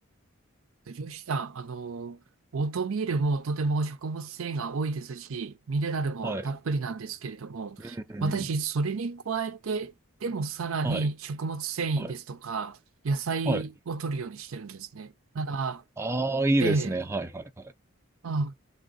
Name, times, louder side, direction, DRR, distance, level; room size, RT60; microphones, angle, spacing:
voice 1, 0.9-2.2 2.5-9.9 10.2-12.8 13.0-15.8 16.6-17.0 18.2-18.5, right 3 dB, 80° right, 0.6 m, -31 dB
voice 2, 7.8-8.5 10.8-11.1 12.0-12.1 13.5-13.6 16.0-17.7, right 2 dB, 10° right, 0.4 m, -29 dB
3.5 x 2.5 x 3.9 m
head